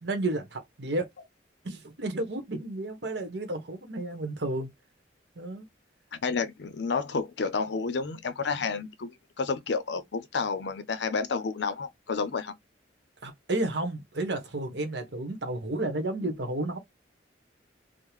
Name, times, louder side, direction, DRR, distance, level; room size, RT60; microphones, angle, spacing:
voice 1, 0.0-1.1 1.6-4.7 5.4-5.7 13.2-16.8, right 2 dB, 65° right, 1.0 m, -32 dB
voice 2, 6.2-12.5, left 4 dB, 65° left, 0.5 m, -30 dB
3.6 x 2.1 x 3.0 m
head